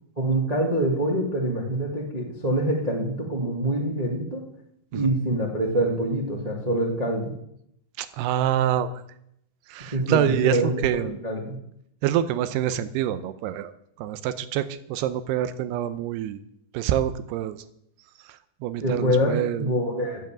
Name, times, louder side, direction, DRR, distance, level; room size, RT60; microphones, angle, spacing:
voice 1, 0.2-4.4 4.9-7.3 9.9-11.6 18.8-20.2, right 1 dB, 55° right, -1 dB, 0.4 m, -25 dB
voice 2, 8.0-9.0 9.7-11.2 12.0-13.7 14.0-16.4 16.7-17.6 18.3-19.7, right 11 dB, 85° right, 13 dB, 2.8 m, -26 dB
14.0 x 8.2 x 7.4 m, 0.74 s
omnidirectional pair, 4.7 m